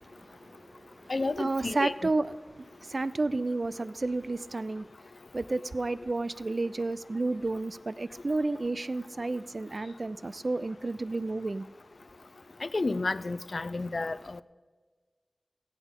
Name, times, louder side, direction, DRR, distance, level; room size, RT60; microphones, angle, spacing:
voice 1, 0.0-1.1 1.4-4.9 5.3-11.7, right 2 dB, 60° right, 0.4 m, -31 dB
voice 2, 1.1-2.1 12.6-14.4, left 3 dB, 65° left, 0.4 m, -31 dB
17.0 x 8.4 x 3.7 m
cardioid pair, 40°, 0 cm